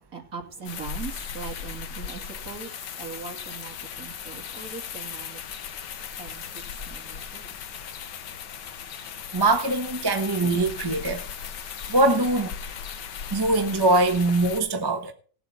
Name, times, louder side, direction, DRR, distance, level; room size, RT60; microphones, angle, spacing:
voice 1, 0.0-5.4 6.2-7.5, right 5 dB, 55° right, 2.9 m, -40 dB
sound 1, 0.7-14.6, left 7 dB, 85° left, 1.6 m, -37 dB
voice 2, 9.3-11.2 11.9-12.5 13.3-15.1, right 2 dB, 15° right, 0.9 m, -22 dB
18.5 x 7.8 x 4.1 m
omnidirectional pair, 1.9 m